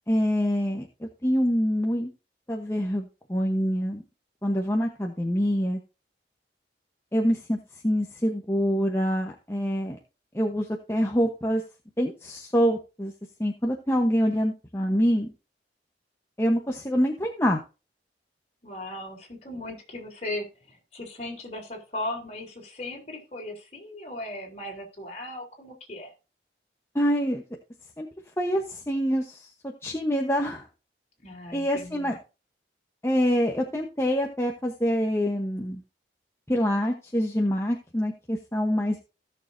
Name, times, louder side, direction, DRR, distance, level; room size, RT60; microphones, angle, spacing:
voice 1, 0.1-2.1 2.5-4.0 4.4-5.8 7.1-7.6 7.8-10.0 10.3-11.6 12.0-13.1 13.4-15.3 16.4-17.6 26.9-27.4 28.0-28.1 28.4-29.4 29.8-30.6 31.5-32.1 33.0-35.8 36.5-39.0, equal, 15° left, 1 dB, 1.0 m, -25 dB
voice 2, 18.6-26.1 31.2-32.1, left 1 dB, 40° left, 0 dB, 3.7 m, -37 dB
17.0 x 6.6 x 2.7 m, 0.30 s
head